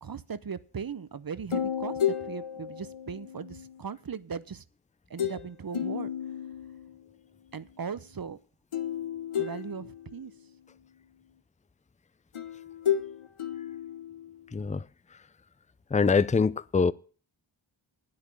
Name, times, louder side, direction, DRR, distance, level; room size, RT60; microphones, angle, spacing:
voice 1, 0.0-4.6 5.1-6.1 7.5-8.4 9.4-10.3, right 6 dB, 45° right, 0.8 m, -38 dB
sound 1, 1.5-3.8 5.2-5.5 5.7-7.0 8.7-10.4 12.3-14.6, left 9 dB, 85° left, 1.2 m, -33 dB
voice 2, 14.5-14.8 15.9-16.9, left 5 dB, 15° left, 0.5 m, -24 dB
9.7 x 8.7 x 7.0 m
cardioid pair, 40°, 49 cm